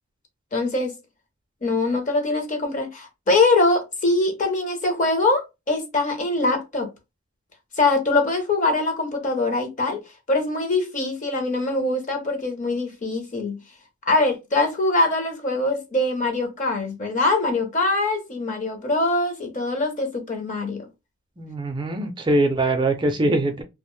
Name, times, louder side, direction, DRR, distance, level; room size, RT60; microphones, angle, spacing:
voice 1, 0.5-1.0 1.6-6.9 7.8-10.0 10.3-13.6 14.1-20.9, left 2 dB, 35° left, 0.6 m, -23 dB
voice 2, 21.4-23.6, right 2 dB, 20° right, 0.4 m, -22 dB
2.4 x 2.1 x 3.0 m
head